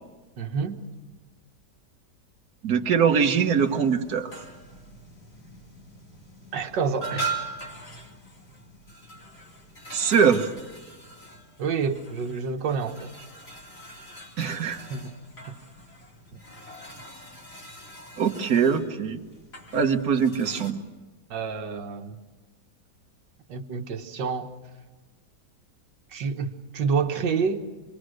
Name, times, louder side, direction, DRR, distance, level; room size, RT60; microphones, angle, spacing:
voice 1, 0.4-0.8 6.5-7.5 11.6-13.1 14.9-15.2 15.5-15.6 16.3-16.4 21.3-22.2 23.5-24.5 26.1-27.7, right 5 dB, 80° right, 6 dB, 1.9 m, -28 dB
voice 2, 2.6-4.3 9.9-10.5 14.4-14.8 18.2-19.2 19.7-20.8, right 6 dB, 60° right, 5 dB, 1.7 m, -22 dB
sound 1, 2.9-20.7, right 3 dB, 35° left, 2.7 m, -41 dB
26.5 x 22.0 x 6.5 m, 1.3 s
omnidirectional pair, 1.9 m